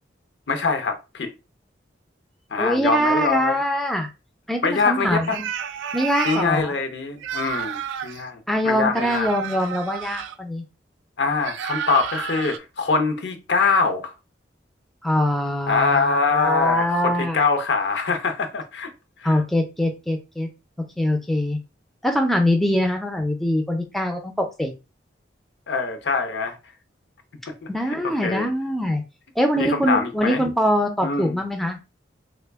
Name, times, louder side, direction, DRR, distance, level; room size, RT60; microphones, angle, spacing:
voice 1, 0.5-1.3 2.5-3.6 4.6-5.4 6.2-9.3 11.2-14.1 15.7-18.9 19.2-19.4 25.7-26.6 27.9-28.5 29.6-30.4 31.0-31.4, left 4 dB, 65° left, 0.6 m, -24 dB
voice 2, 2.6-4.1 4.5-5.4 5.9-6.7 8.5-10.6 15.0-17.4 19.2-20.5 21.0-21.6 22.0-24.7 27.7-29.0 29.4-31.8, equal, ahead, 0.4 m, -23 dB
sound 1, 5.2-6.5 7.2-8.2 8.9-10.4 11.4-12.6, right 8 dB, 85° right, 0.3 m, -31 dB
3.2 x 2.1 x 3.3 m
head